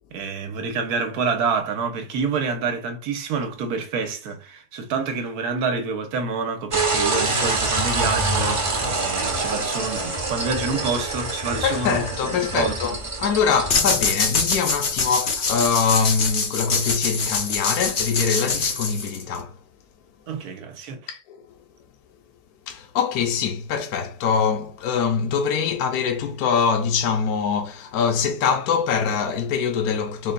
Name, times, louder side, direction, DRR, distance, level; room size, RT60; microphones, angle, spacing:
voice 1, 0.1-13.0 20.3-21.1, right 5 dB, 70° right, 1.3 m, -27 dB
sound 1, 6.7-13.7, right 3 dB, 30° right, 0.6 m, -25 dB
voice 2, 11.6-19.6 21.1-21.4 22.7-30.3, left 6 dB, 70° left, 1.1 m, -24 dB
sound 2, 13.7-19.4, left 4 dB, 50° left, 1.1 m, -24 dB
4.0 x 3.8 x 2.2 m
omnidirectional pair, 1.8 m